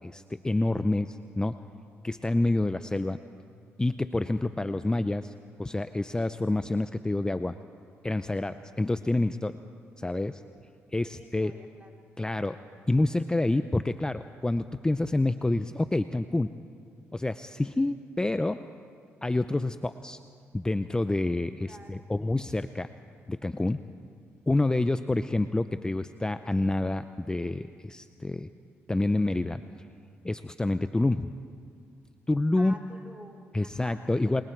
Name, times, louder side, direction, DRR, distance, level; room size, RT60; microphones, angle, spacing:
voice 1, 0.0-1.6 2.0-3.2 3.8-5.3 5.6-7.6 8.0-9.6 10.0-10.4 10.9-11.5 12.2-12.6 12.9-16.5 17.1-18.7 19.2-20.2 20.5-22.9 23.3-23.8 24.5-28.5 28.9-29.6 30.2-31.3 32.3-32.8 33.5-34.4, left 2 dB, 15° left, 11 dB, 0.6 m, -28 dB
voice 2, 11.0-12.0 21.6-22.0 32.5-34.4, right 1 dB, 25° right, 1 dB, 3.1 m, -49 dB
29.0 x 21.5 x 4.6 m, 2.2 s
cardioid pair, 70°, 5 cm